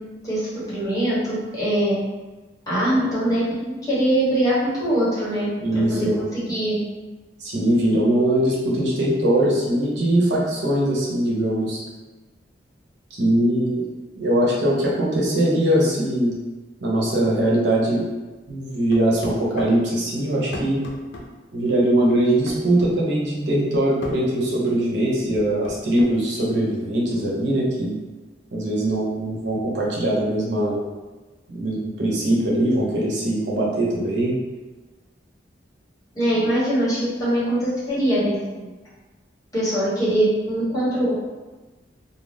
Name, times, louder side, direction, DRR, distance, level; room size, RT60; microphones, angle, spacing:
voice 1, 0.7-1.9 2.7-5.5 6.0-6.7 36.1-38.7 39.5-41.1, right 1 dB, 20° left, -10 dB, 1.1 m, -22 dB
voice 2, 5.6-6.2 7.4-11.8 13.2-13.8 14.2-16.3 16.8-18.0 18.5-20.8 21.5-28.0 28.5-30.8 31.5-34.3, right 1 dB, 80° right, -5 dB, 0.8 m, -21 dB
sound 1, 18.9-19.8 20.5-21.3 22.5-23.0 24.0-24.2 25.3-26.1, left 1 dB, 85° left, 0.5 m, -34 dB
2.5 x 2.2 x 3.3 m, 1.2 s
head